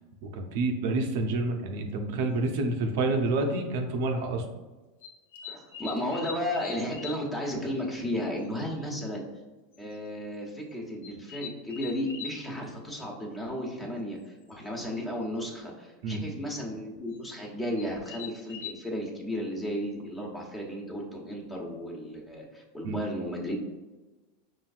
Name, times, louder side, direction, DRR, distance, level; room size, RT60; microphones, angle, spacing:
voice 1, 0.2-4.4 16.0-16.2 22.8-23.0, right 2 dB, 70° right, 3 dB, 0.6 m, -28 dB
sound 1, 2.5-2.6 3.3-3.6 5.0-7.3 7.6-7.7 8.0-8.1 8.4-8.5 8.8-8.9 9.7-10.0 11.0-12.4 14.5-14.6 14.9-15.2 17.1-17.2 17.8-18.7, left 7 dB, 90° left, 0.5 m, -42 dB
voice 2, 5.4-9.2 9.8-23.5, left 1 dB, 15° left, -1 dB, 1.0 m, -34 dB
5.5 x 2.6 x 2.4 m, 1.2 s
hypercardioid pair, 110°, 0 cm